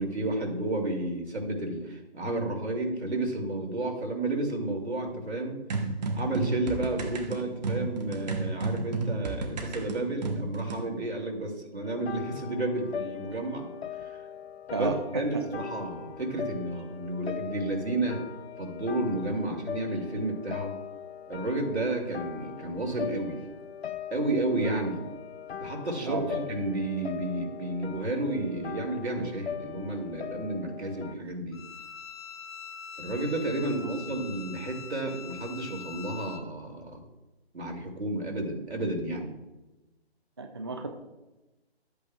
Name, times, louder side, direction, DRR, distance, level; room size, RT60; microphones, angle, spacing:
voice 1, 0.0-5.6 6.2-13.7 14.0-14.2 14.7-18.2 18.6-20.7 21.3-23.4 24.1-25.0 25.6-31.6 33.0-37.0 37.5-39.4, right 2 dB, 85° right, 1 dB, 2.8 m, -31 dB
sound 1, 5.7-10.8, right 3 dB, 40° right, 1.3 m, -32 dB
sound 2, 11.8-31.1, left 8 dB, 70° left, 0.6 m, -40 dB
voice 2, 26.0-26.4 33.8-33.9 40.4-40.9, right 3 dB, 25° right, 5 dB, 0.4 m, -32 dB
Bowed string instrument, 31.5-36.4, left 7 dB, 25° left, 0.6 m, -43 dB
12.5 x 8.4 x 2.4 m, 1.0 s
figure-of-eight pair, 150°, 32 cm